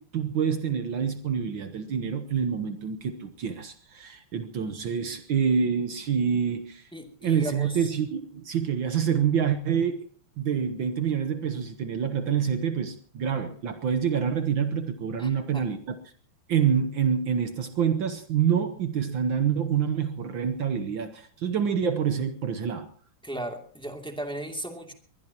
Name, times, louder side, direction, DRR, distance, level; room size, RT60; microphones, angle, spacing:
voice 1, 0.0-6.9 7.2-10.1 10.4-16.0 16.5-22.9, right 7 dB, 65° right, 9 dB, 1.7 m, -27 dB
voice 2, 6.9-7.9 15.2-15.8 23.2-24.9, right 1 dB, ahead, 3 dB, 2.4 m, -36 dB
23.0 x 20.5 x 2.9 m, 0.43 s
omnidirectional pair, 2.4 m